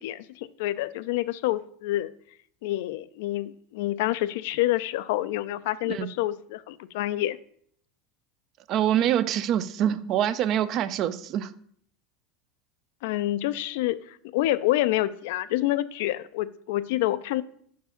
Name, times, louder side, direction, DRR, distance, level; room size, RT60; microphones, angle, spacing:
voice 1, 0.0-2.1 2.6-7.4 13.0-17.4, left 15 dB, 75° left, 15 dB, 0.3 m, -27 dB
voice 2, 8.7-11.5, right 10 dB, 40° right, 15 dB, 0.4 m, -25 dB
5.1 x 4.7 x 5.7 m, 0.62 s
supercardioid pair, 150°, 0 cm